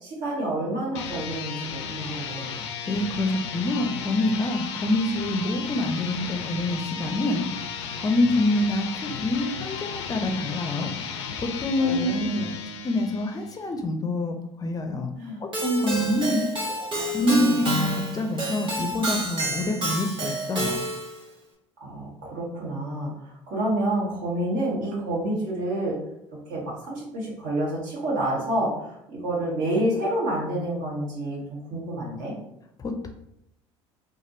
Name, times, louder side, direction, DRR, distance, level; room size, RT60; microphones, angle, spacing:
voice 1, 0.0-2.5 11.8-12.4 15.2-15.4 15.8-16.4 17.0-17.6 21.8-26.0 26.5-32.3, right 1 dB, 65° right, -4 dB, 1.4 m, -29 dB
sound 1, 0.8-13.6, left 6 dB, 90° left, 0.4 m, -34 dB
voice 2, 2.9-7.6 8.0-12.3 12.8-15.1 15.4-16.4 17.1-20.8 32.8-33.1, left 2 dB, 25° left, 5 dB, 0.4 m, -26 dB
Keyboard (musical), 15.5-21.2, right 1 dB, 35° right, 1.2 m, -28 dB
3.3 x 2.2 x 2.6 m, 0.79 s
hypercardioid pair, 75°, 14 cm